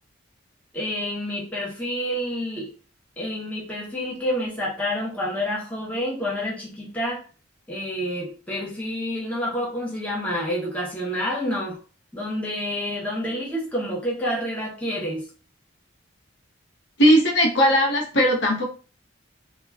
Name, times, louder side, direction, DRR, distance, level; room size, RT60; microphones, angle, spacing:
voice 1, 0.7-2.7 3.2-7.2 7.7-11.8 12.1-15.3, equal, 5° left, -4 dB, 0.6 m, -28 dB
voice 2, 17.0-18.6, equal, 60° left, 0 dB, 0.6 m, -18 dB
2.2 x 2.2 x 3.2 m, 0.38 s
head